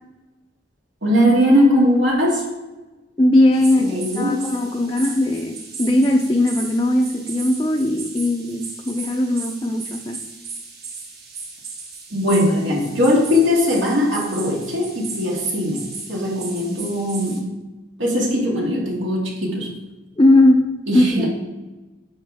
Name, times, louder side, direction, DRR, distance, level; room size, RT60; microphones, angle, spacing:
voice 1, 1.0-2.4 3.8-4.5 12.1-17.5 18.0-19.8 20.9-21.3, left 1 dB, 80° right, -2 dB, 2.3 m, -20 dB
voice 2, 3.2-10.2 20.2-21.3, left 1 dB, 20° left, 0 dB, 0.5 m, -19 dB
sound 1, 3.5-17.4, right 4 dB, 55° right, 1.6 m, -36 dB
10.0 x 6.3 x 3.5 m, 1.1 s
head